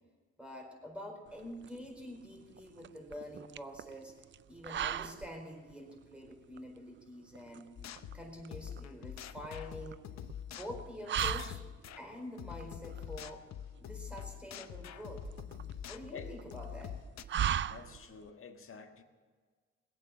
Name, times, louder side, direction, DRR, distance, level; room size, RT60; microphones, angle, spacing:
voice 1, 0.4-4.1 4.5-7.7 8.1-10.0 10.5-11.6 12.0-13.5 13.8-15.3 15.8-17.0, equal, 5° right, 1 dB, 4.5 m, -46 dB
sound 1, 1.3-18.3, right 10 dB, 40° right, 0.4 m, -40 dB
sound 2, 7.8-12.0 12.4-17.2, left 9 dB, 60° left, 0.8 m, -45 dB
voice 2, 17.7-19.0, left 5 dB, 45° left, 5 dB, 1.7 m, -49 dB
20.5 x 8.8 x 7.2 m, 1.5 s
cardioid pair, 90°, 30 cm